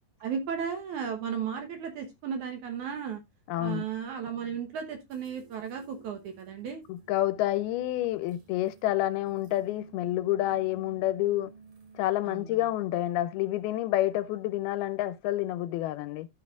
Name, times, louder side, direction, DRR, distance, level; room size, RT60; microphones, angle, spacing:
voice 1, 0.2-3.2 3.6-6.8 12.3-12.7, right 7 dB, 70° right, 2.0 m, -35 dB
voice 2, 3.5-3.8 6.9-11.5 12.0-16.3, left 14 dB, 80° left, 2.5 m, -28 dB
sound 1, 3.5-12.1, right 5 dB, 50° right, 3.8 m, -55 dB
13.5 x 6.2 x 2.4 m
omnidirectional pair, 4.5 m